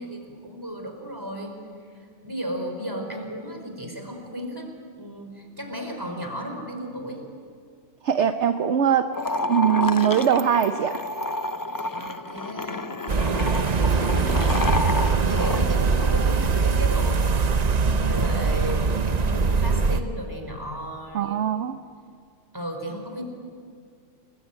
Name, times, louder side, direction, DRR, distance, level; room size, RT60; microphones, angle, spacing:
voice 1, 0.0-1.6 2.2-4.7 5.0-7.2 11.9-12.8 13.5-21.4 22.5-23.2, equal, 15° right, 3 dB, 4.7 m, -35 dB
voice 2, 8.0-9.1 9.5-11.0 21.1-21.8, right 8 dB, 60° right, 8 dB, 1.1 m, -21 dB
sound 1, 9.1-15.6, left 2 dB, 25° left, 0.5 m, -29 dB
sound 2, 13.1-20.0, right 4 dB, 35° right, 0.8 m, -22 dB
30.0 x 20.0 x 9.0 m, 2.1 s
omnidirectional pair, 1.4 m